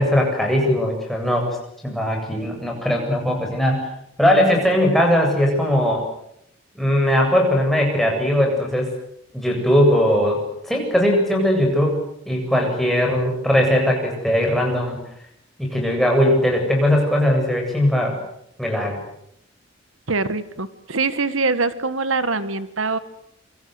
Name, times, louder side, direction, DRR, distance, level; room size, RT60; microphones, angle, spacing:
voice 1, 0.0-3.9 4.2-6.0 6.7-8.9 9.3-15.0 15.6-18.2 18.6-19.0, equal, ahead, 0 dB, 7.9 m, -19 dB
voice 2, 20.1-23.0, right 3 dB, 85° right, 13 dB, 1.6 m, -23 dB
27.5 x 26.0 x 8.0 m, 0.75 s
head